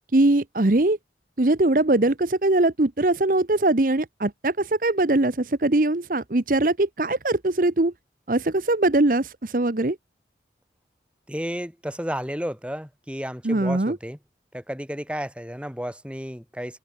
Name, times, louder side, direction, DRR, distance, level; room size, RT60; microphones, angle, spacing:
voice 1, 0.1-1.0 1.4-7.9 8.3-10.0 13.4-14.0, right 2 dB, 50° right, 1.0 m, -21 dB
voice 2, 11.3-14.2 14.5-16.8, equal, 5° right, 5.0 m, -32 dB
open air
head